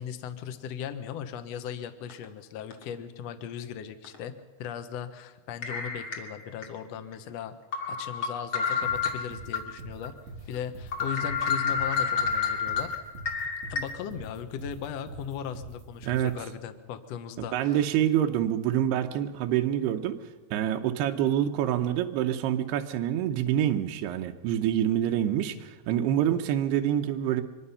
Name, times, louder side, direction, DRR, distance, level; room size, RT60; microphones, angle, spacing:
voice 1, 0.0-7.5 7.9-10.1 10.5-12.9 13.7-17.8, left 8 dB, 85° left, 9 dB, 1.4 m, -38 dB
sound 1, 2.1-2.2 2.7-2.8 4.0-4.2 5.6-6.7 7.1-7.2 7.7-9.6 10.0-10.1 10.5-10.6 10.9-13.8, left 6 dB, 35° left, 2.6 m, -29 dB
sound 2, 8.8-16.3, right 3 dB, 45° right, 4.8 m, -43 dB
voice 2, 17.5-20.2 20.5-27.4, right 11 dB, 85° right, 5 dB, 2.9 m, -26 dB
24.5 x 21.0 x 5.6 m, 1.2 s
omnidirectional pair, 4.6 m